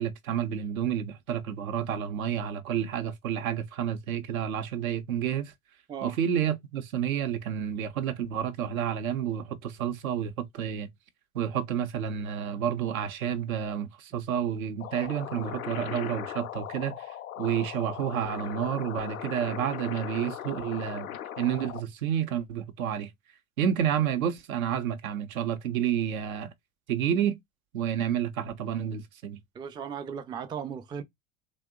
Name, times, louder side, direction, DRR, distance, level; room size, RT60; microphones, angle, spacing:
voice 1, 0.0-5.5 6.0-10.9 11.3-21.1 21.4-23.1 23.6-26.5 26.9-27.4 27.7-29.4, right 9 dB, 80° right, 0.7 m, -30 dB
sound 1, 14.8-21.8, left 11 dB, 90° left, 0.5 m, -38 dB
voice 2, 29.5-31.0, right 7 dB, 10° right, 0.3 m, -36 dB
2.9 x 2.1 x 3.5 m
hypercardioid pair, 70°, 41 cm